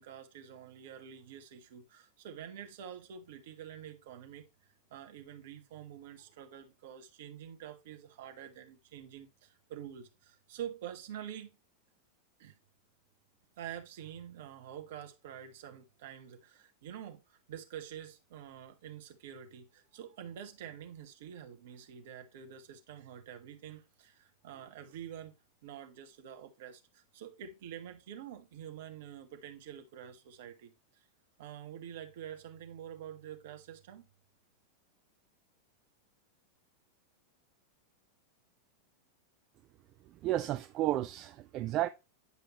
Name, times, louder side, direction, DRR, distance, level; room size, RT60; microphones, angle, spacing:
voice 1, 0.0-4.4 4.9-11.6 12.4-12.5 13.6-25.3 25.6-31.1 31.4-34.1, right 9 dB, 55° right, 1.1 m, -47 dB
voice 2, 40.2-41.9, right 14 dB, 35° right, 0.4 m, -32 dB
9.6 x 4.9 x 3.0 m
figure-of-eight pair, 90°, 0 cm